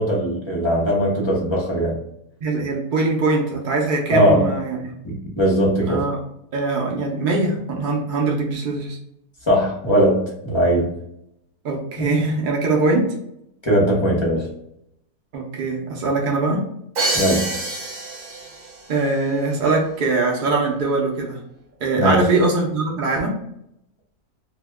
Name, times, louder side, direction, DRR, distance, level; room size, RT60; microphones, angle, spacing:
voice 1, 0.0-2.0 4.1-4.5 5.0-6.0 9.5-10.9 13.6-14.5 17.1-17.5 22.0-22.3, equal, 30° left, -5 dB, 0.5 m, -19 dB
voice 2, 2.4-4.9 5.9-6.2 6.5-9.0 11.6-13.1 15.3-16.7 18.9-21.4 21.8-23.4, right 3 dB, 90° right, -1 dB, 0.4 m, -22 dB
Crash cymbal, 17.0-18.8, right 2 dB, 55° right, 1.1 m, -26 dB
2.7 x 2.1 x 3.3 m, 0.78 s
omnidirectional pair, 1.6 m